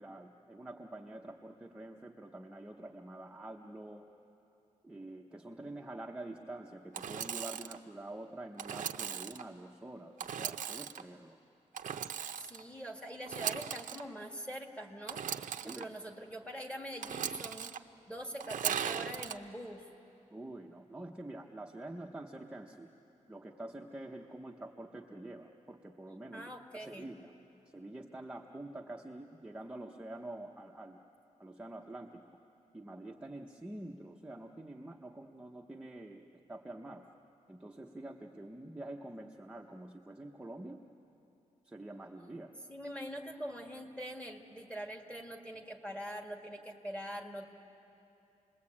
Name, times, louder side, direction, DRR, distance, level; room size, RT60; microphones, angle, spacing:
voice 1, 0.0-4.0 4.8-11.4 15.6-15.9 20.3-22.9 23.3-27.3 27.7-31.0 31.4-32.2 32.7-37.0 37.5-40.8 41.6-42.5, right 1 dB, 10° right, 0 dB, 0.8 m, -47 dB
Engine / Sawing, 6.9-7.8 8.6-9.4 10.2-11.0 11.7-12.6 13.2-14.0 15.1-15.8 17.0-17.8 18.4-19.3, right 8 dB, 80° right, 0.7 m, -38 dB
voice 2, 12.4-15.2 15.6-17.7 18.1-19.8 26.3-27.1 42.7-47.5, equal, 10° left, 1 dB, 1.8 m, -43 dB
28.5 x 21.0 x 8.6 m, 2.9 s
wide cardioid pair, 175°, 13 cm